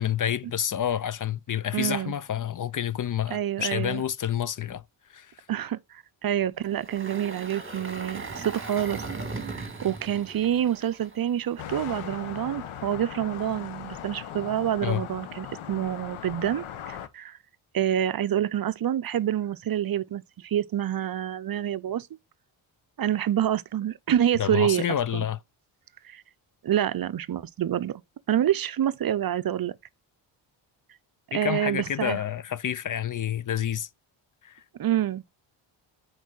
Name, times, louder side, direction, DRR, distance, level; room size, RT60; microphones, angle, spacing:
voice 1, 0.0-4.8 5.1-5.4 14.8-15.0 24.4-25.4 31.3-33.9 34.4-34.6, left 10 dB, 40° left, 0.5 m, -29 dB
voice 2, 1.7-2.1 3.3-4.0 5.5-9.0 9.4-17.4 17.7-22.1 23.0-25.3 26.0-26.2 26.6-28.0 28.3-29.7 31.3-32.2 34.8-35.2, right 10 dB, 45° right, 0.6 m, -27 dB
Engine, 6.6-11.9, right 3 dB, 25° right, 2.1 m, -38 dB
sound 1, 11.6-17.1, left 9 dB, 80° left, 1.3 m, -39 dB
9.2 x 4.6 x 4.0 m
cardioid pair, 80°, 49 cm